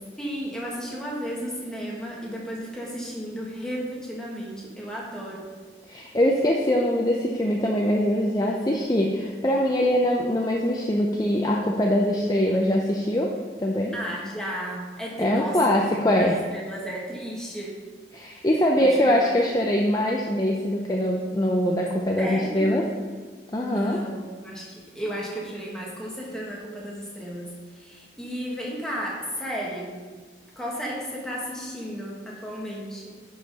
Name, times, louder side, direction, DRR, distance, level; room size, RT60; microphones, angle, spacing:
voice 1, 0.2-5.5 13.9-15.7 16.1-17.8 18.8-19.4 22.2-23.0 23.6-30.0 30.5-33.2, equal, 5° left, -4 dB, 1.7 m, -34 dB
voice 2, 5.9-13.3 13.6-13.9 15.2-16.3 18.1-22.8 23.5-24.0, equal, 20° left, -1 dB, 0.6 m, -23 dB
11.0 x 5.7 x 4.1 m, 1.5 s
head